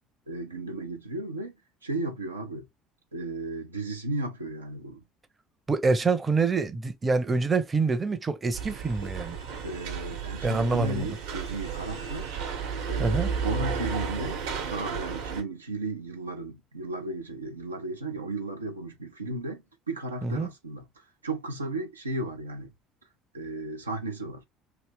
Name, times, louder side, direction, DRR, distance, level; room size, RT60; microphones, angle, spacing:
voice 1, 0.3-1.5 1.8-2.7 3.1-5.0 9.6-12.3 12.9-20.9 21.2-22.7 23.3-24.4, right 2 dB, 85° right, 0.6 m, -34 dB
voice 2, 5.7-9.4 10.4-11.2 13.0-13.3 20.2-20.5, right 4 dB, 25° right, 0.7 m, -26 dB
sound 1, 8.5-15.4, right 6 dB, 65° right, 1.0 m, -33 dB
3.2 x 2.7 x 3.3 m
figure-of-eight pair, 60°, 0 cm